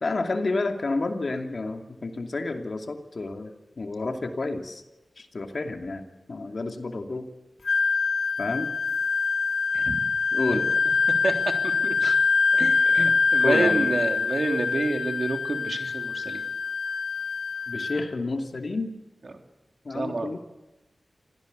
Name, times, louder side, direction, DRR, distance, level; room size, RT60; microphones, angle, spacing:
voice 1, 0.0-4.8 5.2-7.3 8.4-8.7 10.3-10.7 12.0-12.2 12.5-13.1 13.4-13.9 17.7-18.9 19.8-20.4, left 3 dB, 65° left, 5 dB, 2.6 m, -30 dB
Wind instrument woodwind instrument, 7.6-18.0, left 5 dB, 90° left, 1.3 m, -24 dB
voice 2, 11.6-12.1 12.6-12.9 13.3-16.4 19.3-19.4 19.9-20.4, right 3 dB, 60° right, 4 dB, 3.4 m, -28 dB
27.0 x 16.5 x 8.4 m, 1.0 s
cardioid pair, 50°, 0 cm